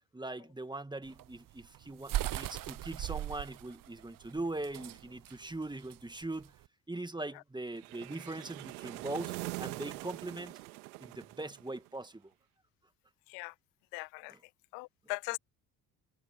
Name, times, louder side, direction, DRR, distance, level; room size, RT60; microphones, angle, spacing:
voice 1, 0.1-6.5 6.9-10.6 11.0-12.3, right 2 dB, 10° right, 1.9 m, -41 dB
sound 1, 1.0-6.6, right 14 dB, 50° right, 0.9 m, -39 dB
sound 2, 7.7-12.0, right 23 dB, 80° right, 2.2 m, -43 dB
voice 2, 13.9-14.4 14.7-15.4, left 27 dB, 75° left, 1.7 m, -40 dB
hypercardioid pair, 55°, 44 cm